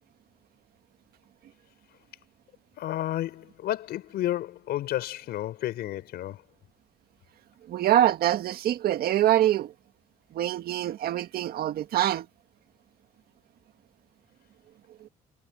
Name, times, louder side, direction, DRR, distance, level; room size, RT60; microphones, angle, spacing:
voice 1, 2.8-6.4, left 13 dB, 70° left, 4.3 m, -31 dB
voice 2, 7.7-9.7 10.3-12.3 15.0-15.1, right 12 dB, 65° right, 1.8 m, -24 dB
cardioid pair, 110°, 17 cm